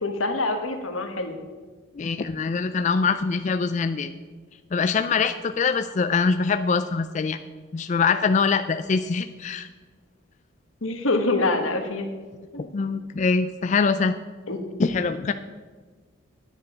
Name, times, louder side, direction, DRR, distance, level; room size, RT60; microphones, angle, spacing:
voice 1, 0.0-1.4 10.8-12.1 12.5-12.7 14.5-14.6, left 2 dB, 90° left, 5 dB, 1.4 m, -25 dB
voice 2, 2.0-4.1 4.7-7.4 7.7-9.7 12.7-14.1 14.8-15.3, left 5 dB, 35° left, 9 dB, 0.3 m, -23 dB
9.6 x 9.2 x 5.7 m, 1.4 s
head